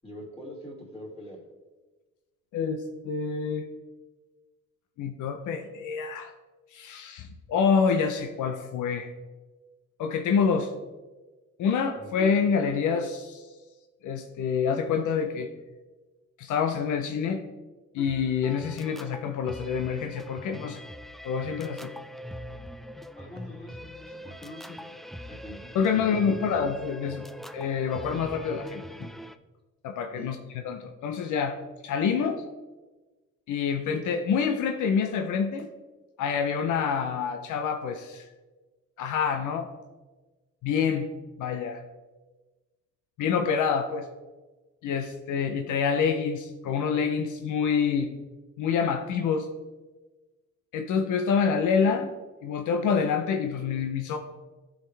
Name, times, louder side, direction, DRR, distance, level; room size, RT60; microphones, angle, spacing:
voice 1, 0.0-1.4 12.0-12.1 23.2-24.9 25.3-25.6 25.9-26.0 26.3-26.4 30.1-30.3 31.2-31.3, left 1 dB, 20° left, -2 dB, 2.9 m, -43 dB
voice 2, 2.5-3.7 5.0-6.3 6.7-9.1 10.0-10.7 11.6-13.5 14.0-15.5 16.4-17.4 17.9-20.8 21.2-21.9 25.7-27.2 27.5-29.1 29.8-30.4 30.6-31.6 31.8-32.4 33.5-35.7 36.2-38.3 39.0-39.7 40.6-41.1 41.4-41.8 43.2-44.1 44.8-48.1 48.6-49.5 50.7-52.1 52.4-54.2, left 6 dB, 80° left, 6 dB, 0.7 m, -27 dB
sound 1, 18.0-29.4, equal, ahead, 0.3 m, -42 dB
14.0 x 4.9 x 3.3 m, 1.2 s
cardioid pair, 90°, 30 cm